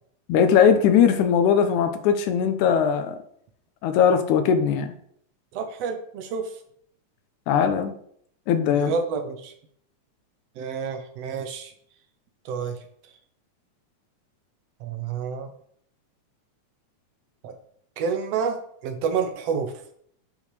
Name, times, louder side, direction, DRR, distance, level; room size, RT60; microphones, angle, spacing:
voice 1, 0.3-3.2 3.8-4.9 7.5-7.9 8.5-8.9, left 7 dB, 80° left, 2.2 m, -20 dB
voice 2, 5.5-6.6 8.7-9.5 10.6-11.7 12.5-12.8 14.8-15.5 17.4-17.5 18.0-19.7, right 6 dB, 70° right, 1.8 m, -29 dB
10.0 x 5.3 x 3.3 m
omnidirectional pair, 3.5 m